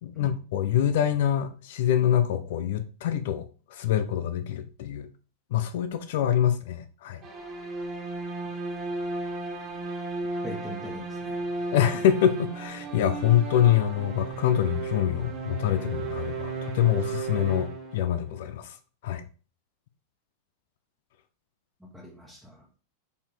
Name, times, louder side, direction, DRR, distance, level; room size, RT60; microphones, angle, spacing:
voice 1, 0.0-3.4 3.7-5.1 5.5-7.2 11.7-18.7 19.0-19.2, left 10 dB, 55° left, 0.6 m, -25 dB
sound 1, 7.2-18.4, right 3 dB, 30° right, 1.7 m, -35 dB
voice 2, 10.4-11.4 21.8-22.6, equal, ahead, 1.5 m, -41 dB
6.9 x 4.3 x 3.4 m
figure-of-eight pair, 90°, 0 cm